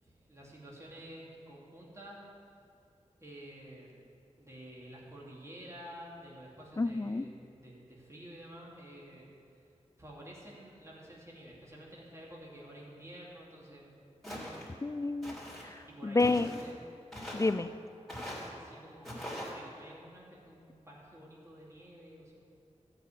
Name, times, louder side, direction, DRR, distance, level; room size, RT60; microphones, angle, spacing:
voice 1, 0.0-2.2 3.2-4.0 4.4-9.3 9.6-9.7 10.0-13.9 14.3-14.7 15.9-16.8 18.5-22.3, equal, 25° right, -5 dB, 2.8 m, -50 dB
voice 2, 6.8-7.3 14.8-15.4 16.0-16.5 17.3-17.7, left 3 dB, 25° left, 13 dB, 0.4 m, -29 dB
Walk footsteps, 14.2-14.7 15.2-15.7 16.2-16.7 17.1-17.5 18.1-18.5 19.0-19.5, equal, 5° left, 3.7 m, -41 dB
13.5 x 5.6 x 8.7 m, 2.4 s
wide cardioid pair, 65°, 12 cm